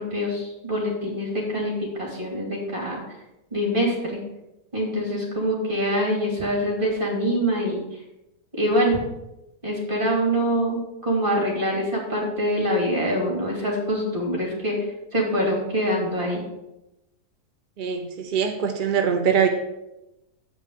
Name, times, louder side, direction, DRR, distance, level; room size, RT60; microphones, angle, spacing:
voice 1, 0.0-3.0 3.5-4.2 4.7-7.8 8.5-9.0 9.6-16.4, equal, 30° right, -1 dB, 3.0 m, -25 dB
voice 2, 17.8-19.5, right 7 dB, 55° right, 4 dB, 0.5 m, -23 dB
7.9 x 5.4 x 6.6 m, 0.92 s
omnidirectional pair, 1.8 m